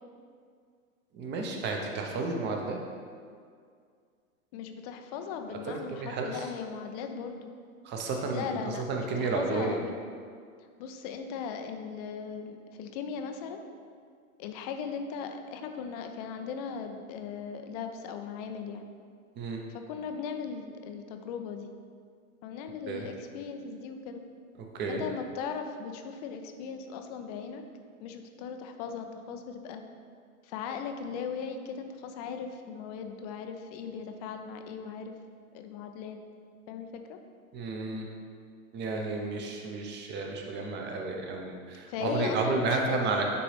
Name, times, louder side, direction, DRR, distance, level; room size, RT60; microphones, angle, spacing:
voice 1, 1.1-2.8 5.5-6.5 7.8-9.8 19.4-19.6 22.9-23.1 24.7-25.0 37.5-38.1 38.7-43.2, right 3 dB, 25° right, 1 dB, 0.8 m, -32 dB
voice 2, 4.5-7.5 8.3-10.0 10.8-13.6 14.4-18.9 19.7-21.7 22.4-24.2 24.9-27.6 28.0-29.8 30.4-35.1 35.5-36.2 36.7-37.2 41.9-43.2, left 6 dB, 30° left, 6 dB, 0.4 m, -38 dB
9.5 x 3.8 x 3.3 m, 2.1 s
hypercardioid pair, 120°, 43 cm